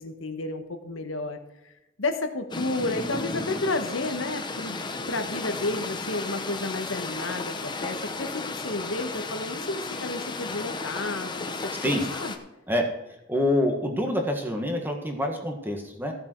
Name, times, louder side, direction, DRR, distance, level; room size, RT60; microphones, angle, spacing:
voice 1, 0.0-1.4 2.0-12.3, left 2 dB, 75° left, 6 dB, 1.4 m, -31 dB
sound 1, 2.5-12.4, left 3 dB, 20° left, 0.9 m, -34 dB
voice 2, 13.3-16.1, left 1 dB, 10° right, 2 dB, 1.7 m, -26 dB
15.0 x 7.1 x 4.6 m, 0.97 s
head